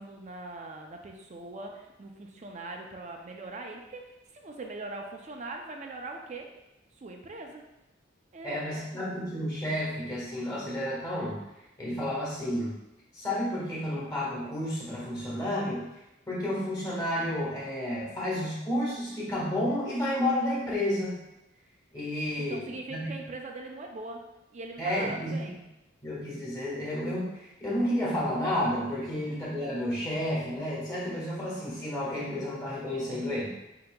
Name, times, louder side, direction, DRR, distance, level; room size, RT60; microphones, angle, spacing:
voice 1, 0.0-6.5 7.0-7.7 8.3-9.0 22.4-24.2 24.5-25.6 29.0-29.1, right 2 dB, 35° right, 2 dB, 0.5 m, -41 dB
voice 2, 8.4-11.4 11.8-12.7 13.1-15.8 16.3-21.2 21.9-23.2 24.8-25.5 26.0-33.5, left 1 dB, 20° left, -7 dB, 1.5 m, -31 dB
7.7 x 2.8 x 2.2 m, 0.95 s
head